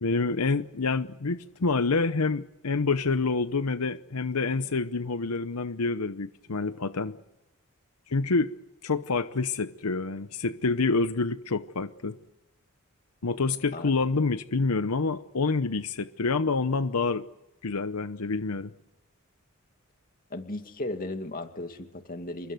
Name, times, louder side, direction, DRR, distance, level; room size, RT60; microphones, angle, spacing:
voice 1, 0.0-7.2 8.1-8.6 8.8-12.2 13.2-17.3 17.6-18.7, left 4 dB, 85° left, 0.9 m, -27 dB
voice 2, 20.3-22.5, left 2 dB, 40° left, 2.3 m, -36 dB
28.0 x 22.5 x 8.0 m
head